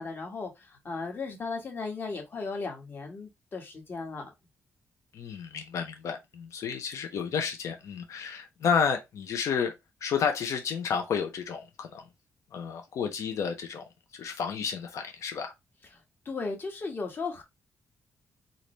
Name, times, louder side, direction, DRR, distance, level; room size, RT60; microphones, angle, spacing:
voice 1, 0.0-4.3 15.9-17.4, left 4 dB, 40° left, 1.4 m, -36 dB
voice 2, 5.1-9.7 10.0-12.0 12.5-13.8 14.1-15.5, left 6 dB, 70° left, 1.0 m, -31 dB
3.8 x 2.8 x 3.2 m
cardioid pair, 130°, 5 cm